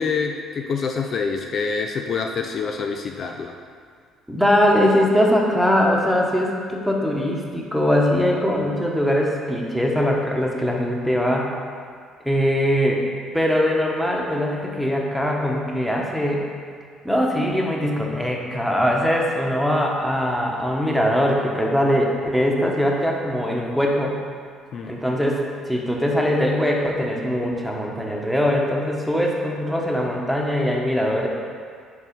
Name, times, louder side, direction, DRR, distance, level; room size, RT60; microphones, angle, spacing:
voice 1, 0.0-3.6 24.7-25.0, left 5 dB, 55° left, 3 dB, 0.4 m, -26 dB
voice 2, 4.3-11.5 12.2-13.0 13.3-16.4 17.0-24.2 24.8-31.3, equal, ahead, -2 dB, 1.1 m, -21 dB
4.7 x 4.1 x 5.2 m, 2.1 s
supercardioid pair, 65°, 0 cm